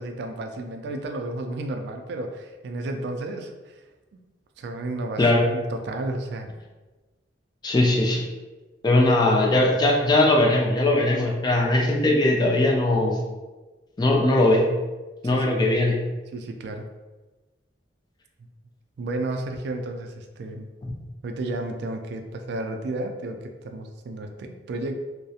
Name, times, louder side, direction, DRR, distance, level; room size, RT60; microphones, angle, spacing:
voice 1, 0.0-3.8 4.1-4.2 4.6-6.5 15.2-15.7 16.3-16.9 19.0-20.7 21.2-25.0, right 2 dB, 65° right, 5 dB, 0.3 m, -32 dB
voice 2, 7.6-8.2 8.8-13.2 14.0-14.7 15.2-16.0, left 2 dB, 25° left, 0 dB, 0.3 m, -20 dB
2.3 x 2.0 x 2.7 m, 1.2 s
head